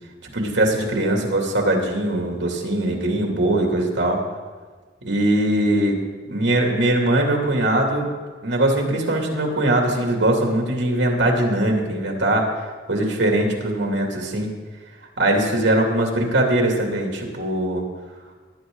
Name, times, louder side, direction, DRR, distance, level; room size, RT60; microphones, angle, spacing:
voice 1, 0.3-4.2 5.0-6.0 6.3-8.0 8.4-12.5 12.9-14.5 15.2-17.8, right 1 dB, 80° right, 1 dB, 2.7 m, -21 dB
19.0 x 9.7 x 3.9 m, 1.4 s
head